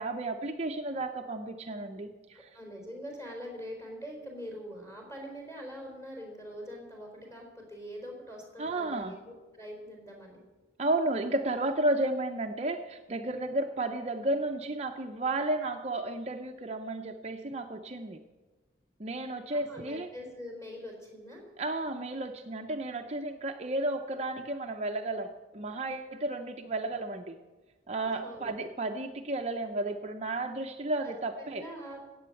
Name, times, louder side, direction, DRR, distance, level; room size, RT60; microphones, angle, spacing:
voice 1, 0.0-2.5 8.6-9.1 10.8-18.2 19.0-20.1 21.6-25.3 25.5-27.3 27.9-31.6, right 2 dB, 35° right, 5 dB, 0.6 m, -33 dB
voice 2, 2.3-10.4 19.5-21.5 28.2-28.6 31.0-32.0, equal, 15° left, 0 dB, 4.1 m, -44 dB
14.5 x 8.5 x 7.8 m, 1.2 s
head